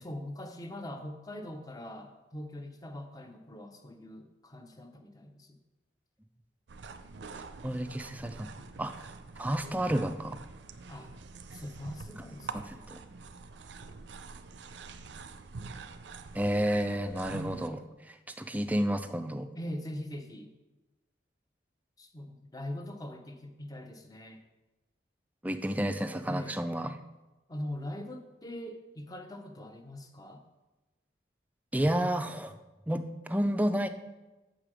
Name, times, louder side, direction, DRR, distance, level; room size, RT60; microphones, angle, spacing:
voice 1, 0.0-5.6 10.9-11.1 11.5-12.8 19.6-20.5 22.0-24.4 26.3-26.5 27.5-30.4, left 1 dB, 20° left, 5 dB, 0.8 m, -42 dB
sound 1, 6.7-17.7, right 4 dB, 85° right, 0.5 m, -45 dB
voice 2, 7.6-8.5 8.8-8.9 9.4-10.4 12.7-13.0 16.3-17.8 18.1-19.5 25.4-27.0 31.7-32.5 32.9-33.9, equal, 10° right, 9 dB, 0.4 m, -30 dB
7.5 x 5.1 x 6.2 m, 1.1 s
head